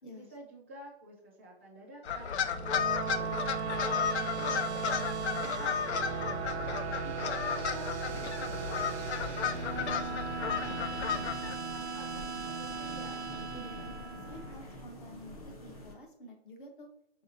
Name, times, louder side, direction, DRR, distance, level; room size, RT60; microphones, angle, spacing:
voice 1, 0.1-6.9 7.4-13.3, right 1 dB, 10° right, -6 dB, 0.5 m, -51 dB
sound 1, 2.0-11.5, left 7 dB, 85° left, 0.5 m, -34 dB
sound 2, 2.4-14.8, right 6 dB, 85° right, 0.5 m, -37 dB
sound 3, 8.1-15.9, left 1 dB, 35° left, 0.7 m, -47 dB
voice 2, 13.5-16.9, equal, 50° left, 4 dB, 1.0 m, -49 dB
4.2 x 3.5 x 2.6 m, 0.74 s
hypercardioid pair, 175°, 32 cm